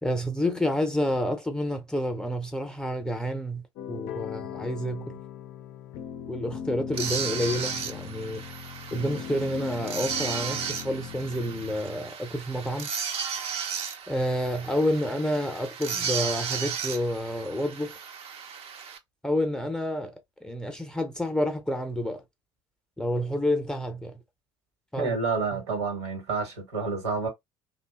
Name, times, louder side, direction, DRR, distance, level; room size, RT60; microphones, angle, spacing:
voice 1, 0.0-5.2 6.3-8.5 8.9-12.9 14.1-18.0 19.2-20.1 20.4-22.2 23.0-24.2 24.9-25.2 25.5-25.6, equal, 5° left, 0.6 m, -29 dB
sound 1, 3.8-11.8, left 8 dB, 55° left, 0.4 m, -39 dB
sound 2, 6.9-19.0, right 7 dB, 45° right, 0.5 m, -35 dB
voice 2, 25.0-27.3, right 4 dB, 75° right, 1.1 m, -29 dB
2.6 x 2.1 x 2.3 m
figure-of-eight pair, 60°, 14 cm